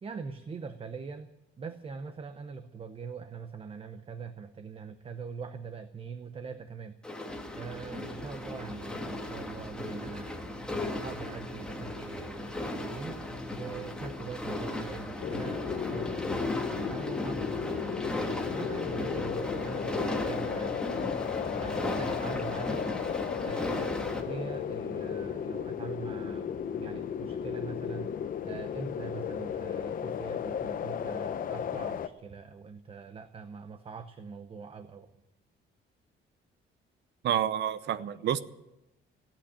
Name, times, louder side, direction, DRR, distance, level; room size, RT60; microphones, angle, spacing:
voice 1, 0.0-1.3 1.6-6.9 7.6-10.5 10.8-12.6 12.9-20.8 21.5-22.8 23.4-28.1 28.4-35.1, right 5 dB, 25° right, 9 dB, 0.8 m, -43 dB
sound 1, 7.0-24.2, left 1 dB, 5° left, 1.6 m, -36 dB
sound 2, 15.2-32.1, left 8 dB, 45° left, 0.8 m, -35 dB
voice 2, 37.2-38.4, right 10 dB, 60° right, 15 dB, 0.8 m, -28 dB
16.5 x 8.8 x 9.9 m, 0.94 s
cardioid pair, 155°, 21 cm